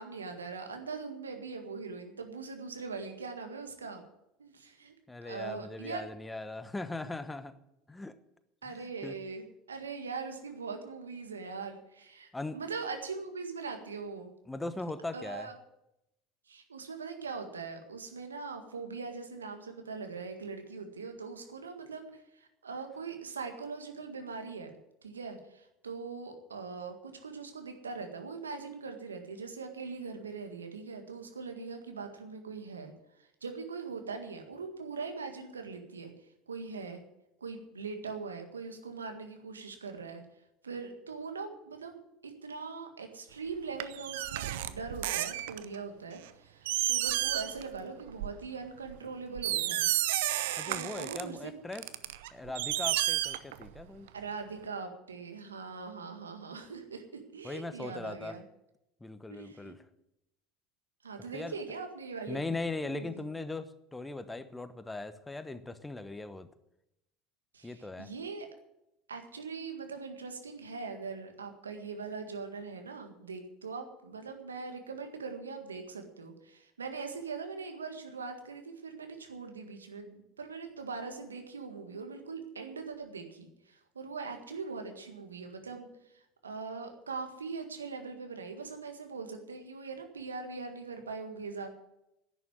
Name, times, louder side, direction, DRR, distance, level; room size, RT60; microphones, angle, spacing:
voice 1, 0.0-4.0 4.4-4.9 5.2-6.0 8.6-14.3 15.1-15.5 16.5-24.8 25.0-32.9 33.2-36.1 36.5-37.0 37.4-40.2 40.6-41.9 42.2-49.9 50.2-50.4 50.7-51.6 54.1-58.4 59.3-59.8 61.0-62.5 62.9-63.2 67.5-68.5 69.1-85.9 86.1-91.7, right 4 dB, 85° right, 5 dB, 1.8 m, -41 dB
voice 2, 5.1-7.6 7.9-8.2 8.6-9.2 12.3-12.6 14.5-15.5 50.6-51.9 52.3-54.1 57.4-58.4 59.0-59.8 61.3-61.6 62.3-66.5 67.6-68.1, left 2 dB, 10° left, 12 dB, 1.1 m, -39 dB
sound 1, 43.8-45.8 46.3-46.4 46.6-47.7 48.0-48.3 48.9-49.0 49.4-51.2 51.7-53.8 54.1-54.2, right 14 dB, 70° right, 0.7 m, -31 dB
11.0 x 9.0 x 9.4 m, 0.86 s
figure-of-eight pair, 70°, 0 cm